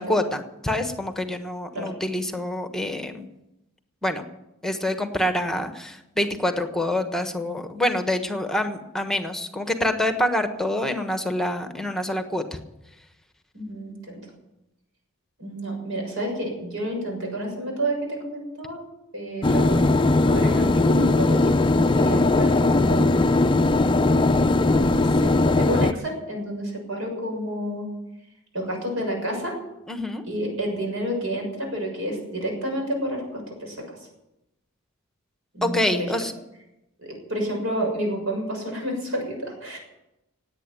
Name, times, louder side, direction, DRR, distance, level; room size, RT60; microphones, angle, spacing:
voice 1, 0.0-3.3 4.0-4.2 4.6-12.4 29.9-30.2 35.6-36.3, left 1 dB, ahead, 7 dB, 1.2 m, -26 dB
voice 2, 13.5-14.3 15.4-18.8 19.1-19.8 20.2-21.4 21.7-23.2 24.3-27.9 28.5-29.5 30.3-33.8 35.5-36.1 37.0-39.8, right 1 dB, 70° right, 2 dB, 6.7 m, -30 dB
sound 1, 19.4-25.9, left 2 dB, 25° left, 0.5 m, -19 dB
17.5 x 9.1 x 9.1 m, 0.92 s
head